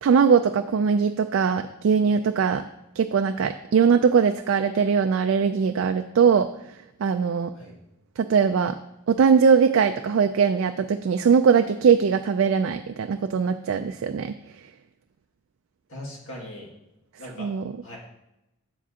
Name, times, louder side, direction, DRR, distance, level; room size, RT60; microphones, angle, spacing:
voice 1, 0.0-2.6 3.0-6.5 7.0-7.5 8.2-8.7 9.1-14.3 17.4-17.6, right 6 dB, 60° right, 7 dB, 0.3 m, -21 dB
voice 2, 15.9-16.7 17.2-17.5 17.8-18.0, left 1 dB, 65° left, -3 dB, 2.1 m, -39 dB
9.2 x 7.4 x 2.8 m, 0.89 s
head